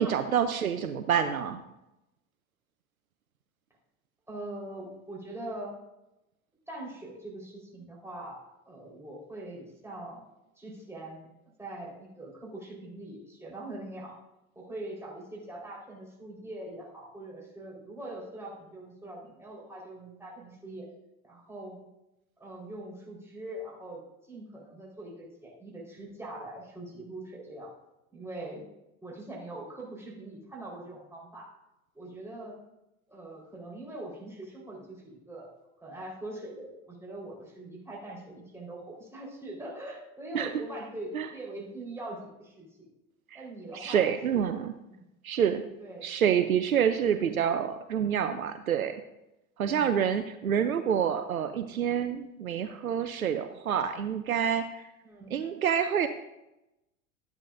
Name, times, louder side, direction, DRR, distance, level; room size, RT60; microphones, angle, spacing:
voice 1, 0.0-1.6 40.3-40.5 41.1-41.3 43.3-43.4 43.7-44.7 45.2-45.6 46.0-49.0 49.6-54.8 55.3-56.1, right 8 dB, 90° right, 9 dB, 0.6 m, -27 dB
voice 2, 4.3-5.7 6.7-10.2 10.6-11.3 11.6-14.2 14.6-20.9 21.2-21.8 22.4-24.0 24.3-27.7 28.1-28.6 29.0-31.5 31.9-32.6 33.1-35.5 35.8-42.9 43.3-44.6 44.9-45.0 45.8-46.0 47.1-47.3 49.7-49.9 55.0-55.4, right 1 dB, 5° right, -4 dB, 4.0 m, -42 dB
13.0 x 10.0 x 2.5 m, 0.92 s
hypercardioid pair, 85°, 41 cm